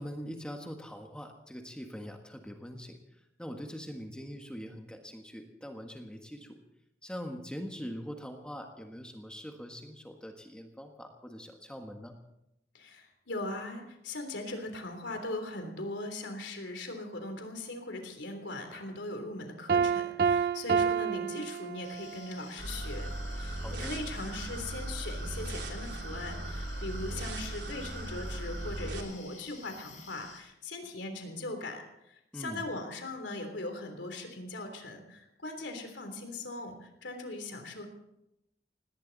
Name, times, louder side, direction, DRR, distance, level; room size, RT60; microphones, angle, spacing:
voice 1, 0.0-3.0 3.4-6.6 7.0-12.2 23.6-23.9 32.3-32.6, equal, 5° left, 3 dB, 1.5 m, -43 dB
voice 2, 12.7-37.9, left 2 dB, 85° left, 5 dB, 3.4 m, -40 dB
Piano, 19.7-22.2, right 6 dB, 55° right, 0.5 m, -28 dB
sound 1, 21.8-30.4, left 5 dB, 45° left, 4.6 m, -52 dB
sound 2, 22.6-29.0, right 1 dB, 75° right, 3.1 m, -38 dB
18.5 x 18.0 x 4.1 m, 0.84 s
head